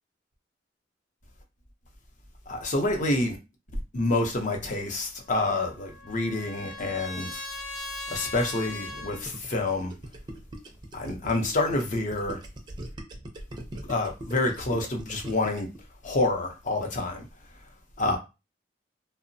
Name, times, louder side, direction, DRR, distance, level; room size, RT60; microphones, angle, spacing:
voice 1, 2.5-3.4 3.9-7.4 8.1-9.9 10.9-12.4 13.8-15.7 16.0-17.3 18.0-18.2, left 2 dB, 40° left, 0.6 m, -28 dB
Trumpet, 5.4-9.2, left 2 dB, 85° left, 0.9 m, -39 dB
Gurgling, 8.7-15.8, right 1 dB, 25° right, 0.4 m, -41 dB
2.8 x 2.1 x 2.6 m
head